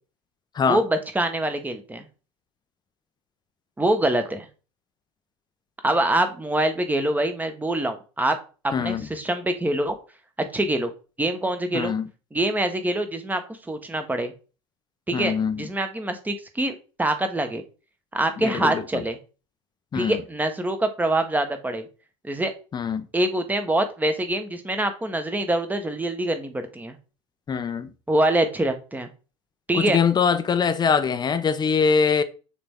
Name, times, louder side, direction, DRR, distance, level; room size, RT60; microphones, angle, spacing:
voice 1, 0.7-2.0 3.8-4.5 5.8-8.4 8.6-10.0 10.5-10.9 11.2-11.9 12.3-13.4 13.7-14.3 15.1-17.6 18.1-19.2 19.9-21.8 22.2-22.5 23.1-26.9 28.1-29.1 29.7-30.0, right 1 dB, 10° right, 1.4 m, -25 dB
voice 2, 8.7-9.1 11.7-12.1 15.1-15.7 18.4-18.8 19.9-20.2 22.7-23.1 27.5-27.9 29.7-32.2, left 6 dB, 25° left, 0.8 m, -23 dB
6.7 x 4.1 x 3.7 m
hypercardioid pair, 80°, 16 cm